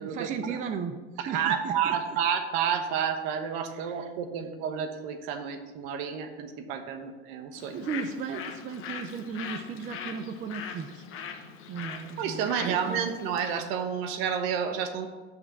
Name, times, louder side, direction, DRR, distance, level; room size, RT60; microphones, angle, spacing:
voice 1, 0.0-2.2 3.7-4.1 7.7-11.0 11.7-13.1, right 6 dB, 20° right, 8 dB, 0.4 m, -36 dB
voice 2, 1.2-7.8 12.2-15.1, right 7 dB, 60° right, 7 dB, 1.2 m, -30 dB
Bird, 7.5-13.7, left 7 dB, 35° left, 1.0 m, -41 dB
6.3 x 6.0 x 6.8 m, 1.3 s
supercardioid pair, 135°, 35 cm